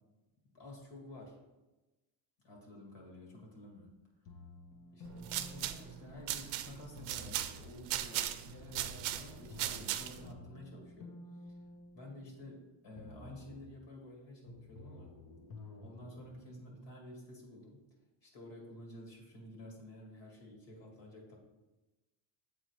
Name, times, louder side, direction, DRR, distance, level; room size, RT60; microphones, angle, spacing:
voice 1, 0.5-1.5 2.4-4.0 4.9-11.1 11.4-11.5 11.9-15.1 15.8-17.8 18.2-21.4, left 1 dB, 60° left, -1 dB, 1.9 m, -51 dB
sound 1, 4.3-6.5 7.0-7.8 8.5-12.6 13.0-13.8 14.5-16.3, left 2 dB, 45° left, 0.8 m, -52 dB
sound 2, 5.1-10.3, right 12 dB, 85° right, 0.6 m, -38 dB
7.4 x 4.3 x 3.0 m, 1.1 s
cardioid pair, 110°, 48 cm